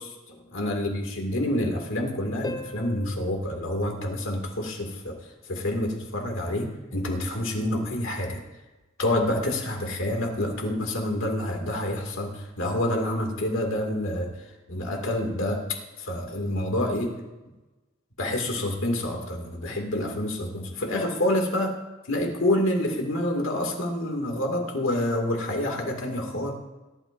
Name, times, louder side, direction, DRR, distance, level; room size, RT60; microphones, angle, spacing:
voice 1, 0.0-5.2 5.5-8.4 9.0-14.3 14.7-17.1 18.2-21.7 22.1-26.5, left 1 dB, 65° left, 2 dB, 2.3 m, -28 dB
Harp, 2.4-4.9 8.4-8.5, left 1 dB, 15° left, 0.7 m, -41 dB
19.5 x 11.5 x 2.6 m, 1.1 s
head